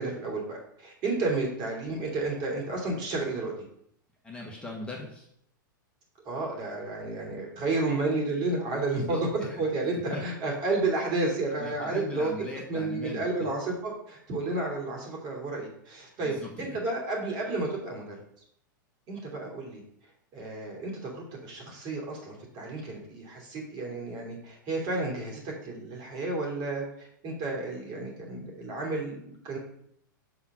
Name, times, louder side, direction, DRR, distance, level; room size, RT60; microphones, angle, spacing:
voice 1, 0.0-3.5 6.2-9.2 9.6-12.3 12.7-18.2 19.1-19.8 20.3-29.6, right 2 dB, 40° right, -1 dB, 2.8 m, -31 dB
voice 2, 4.2-5.3 9.0-9.2 9.5-9.6 10.1-10.2 11.6-13.5 16.2-16.8, left 2 dB, 10° left, -2 dB, 1.4 m, -39 dB
6.1 x 3.7 x 6.1 m, 0.69 s
hypercardioid pair, 105°, 11 cm